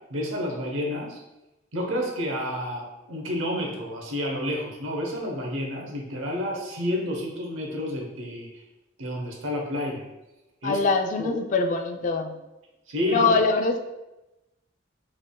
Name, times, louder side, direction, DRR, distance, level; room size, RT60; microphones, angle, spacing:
voice 1, 0.1-1.2 1.7-8.6 9.0-10.1 10.6-10.8 11.2-11.4 12.9-13.4, left 1 dB, 85° right, 0 dB, 0.9 m, -30 dB
voice 2, 10.6-12.4 13.1-13.8, left 4 dB, 40° left, 5 dB, 0.3 m, -23 dB
5.2 x 3.4 x 2.3 m, 0.97 s
head